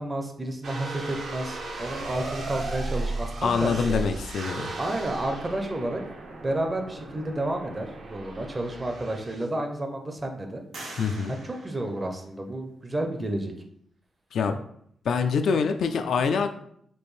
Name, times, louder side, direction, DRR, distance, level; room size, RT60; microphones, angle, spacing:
voice 1, 0.0-4.0 4.8-6.0 6.4-10.6 11.3-13.5, right 1 dB, 20° right, 4 dB, 0.5 m, -31 dB
sound 1, 0.6-9.5, right 2 dB, 65° right, 0.6 m, -36 dB
voice 2, 3.4-4.7 11.0-11.4 14.3-14.6 15.0-16.5, left 5 dB, 75° left, 7 dB, 0.3 m, -25 dB
sound 2, 8.5-8.6 9.1-9.8 10.7-12.7, right 2 dB, 85° right, 1.0 m, -45 dB
4.4 x 2.5 x 3.1 m, 0.68 s
wide cardioid pair, 140°, 0 cm